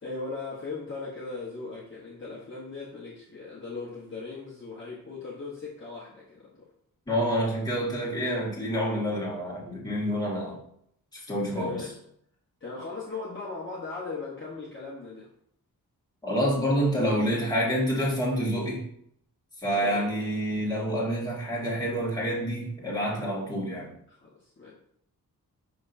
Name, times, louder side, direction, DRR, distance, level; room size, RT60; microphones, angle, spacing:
voice 1, 0.0-6.7 11.5-11.9 12.6-15.3 19.7-20.1 24.1-24.7, left 3 dB, 35° left, -6 dB, 1.1 m, -38 dB
voice 2, 7.1-10.6 11.1-11.8 16.2-18.8 19.6-23.9, equal, 10° left, -6 dB, 1.8 m, -28 dB
6.0 x 5.9 x 2.7 m, 0.70 s
wide cardioid pair, 175°, 36 cm